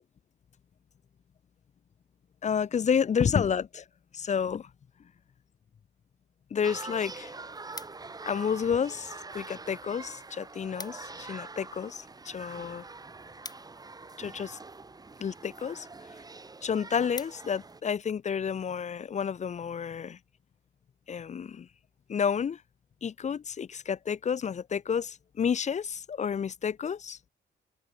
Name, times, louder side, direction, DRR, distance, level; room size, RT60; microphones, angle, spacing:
voice 1, 2.4-3.8 4.1-4.7 6.5-7.3 8.3-12.8 14.2-14.6 15.2-15.9 16.6-20.2 21.1-21.7 22.1-22.6 23.0-27.2, left 7 dB, 35° left, 0.6 m, -30 dB
sound 1, 6.6-17.8, right 3 dB, 20° right, 1.0 m, -45 dB
sound 2, 7.8-8.4 9.1-9.6 9.9-10.0 10.3-10.4 10.6-11.2 11.6-14.4 15.1-15.5 16.0-16.1 16.4-16.5 16.8-17.8 18.3-18.5, left 3 dB, 20° left, 5.1 m, -47 dB
cardioid pair, 90°, 20 cm